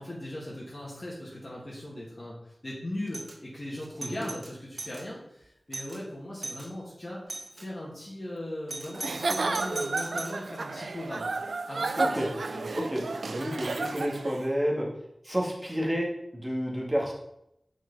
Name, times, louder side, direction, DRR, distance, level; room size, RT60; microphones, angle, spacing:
voice 1, 0.0-7.2 7.5-11.3 11.7-12.7, left 1 dB, 45° left, -7 dB, 2.1 m, -39 dB
Doorbell, 3.1-3.4 3.8-5.1 5.4-5.5 5.7-6.0 6.4-6.7 7.3-7.7 8.7-10.4, right 2 dB, 60° right, 0.8 m, -39 dB
Giggle / Chuckle chortle, 8.9-14.4, right 3 dB, 90° right, 0.3 m, -32 dB
voice 2, 12.0-12.3 12.7-14.9 15.2-16.1 16.3-17.1, equal, 15° right, -2 dB, 2.0 m, -30 dB
6.1 x 5.8 x 4.0 m, 0.80 s
wide cardioid pair, 55°, 0 cm